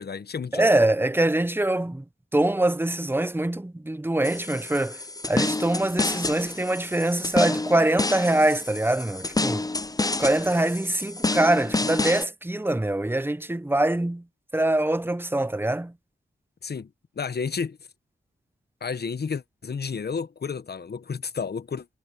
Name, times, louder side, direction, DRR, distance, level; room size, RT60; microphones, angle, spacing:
voice 1, 0.0-0.7 16.6-16.9 17.2-17.8 18.8-21.9, left 5 dB, 55° left, 1.0 m, -31 dB
voice 2, 0.5-2.0 2.3-5.0 5.3-9.7 10.2-14.2 14.5-15.9, right 1 dB, 10° right, 0.8 m, -24 dB
sound 1, 4.2-12.2, left 2 dB, 20° left, 0.6 m, -29 dB
cardioid pair, 60°, 20 cm